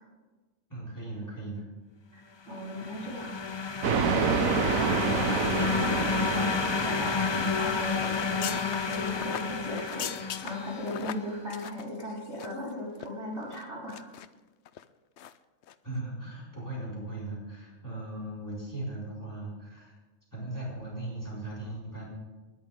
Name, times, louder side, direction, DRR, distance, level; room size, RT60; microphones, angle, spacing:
voice 1, 0.7-1.7 15.8-19.9 20.3-22.1, right 2 dB, 15° left, -6 dB, 4.9 m, -38 dB
sound 1, 2.5-11.1, left 5 dB, 40° left, 0.4 m, -31 dB
voice 2, 2.5-3.3 4.0-6.6 6.8-14.0, left 1 dB, 55° right, -6 dB, 5.1 m, -37 dB
sound 2, 3.8-8.3, right 6 dB, 85° right, 1.3 m, -29 dB
sound 3, 8.0-12.7 13.0-13.1 13.5-14.3 14.7-14.8 15.2-15.4 15.6-15.8, left 10 dB, 65° left, 0.8 m, -40 dB
28.5 x 10.5 x 3.7 m, 1.3 s
omnidirectional pair, 1.4 m